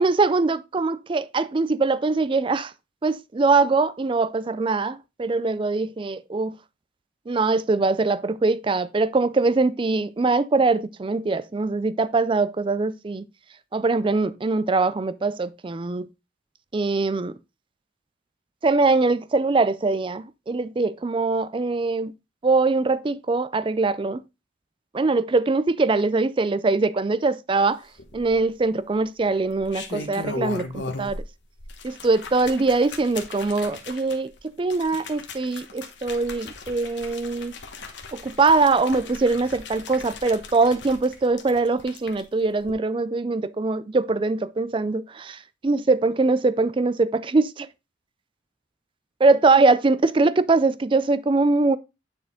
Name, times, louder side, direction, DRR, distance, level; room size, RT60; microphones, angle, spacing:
voice 1, 0.0-2.7 3.0-6.5 7.3-13.2 13.7-16.1 16.7-17.3 18.6-22.1 22.4-24.2 24.9-27.8 28.1-31.2 31.8-34.3 34.6-37.5 38.1-47.7 49.2-51.8, right 3 dB, 25° right, 0.4 m, -22 dB
sound 1, 28.0-28.6 29.5-31.3 31.6-42.2 42.6-42.7, left 3 dB, 60° left, 1.3 m, -38 dB
9.4 x 4.3 x 3.6 m
head